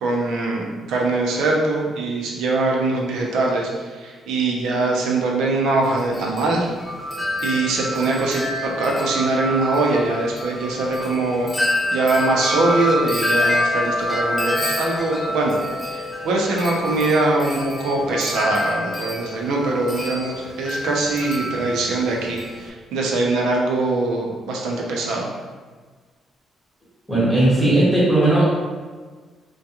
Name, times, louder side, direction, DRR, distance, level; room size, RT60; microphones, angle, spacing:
voice 1, 0.0-6.7 7.4-11.5 11.9-15.6 15.8-25.3, right 2 dB, 85° right, -1 dB, 0.5 m, -22 dB
Wind chime, 5.8-22.7, left 1 dB, 15° left, 0.3 m, -27 dB
voice 2, 27.1-28.5, right 1 dB, 10° right, -9 dB, 1.0 m, -16 dB
2.3 x 2.3 x 2.8 m, 1.4 s
cardioid pair, 90°, 0 cm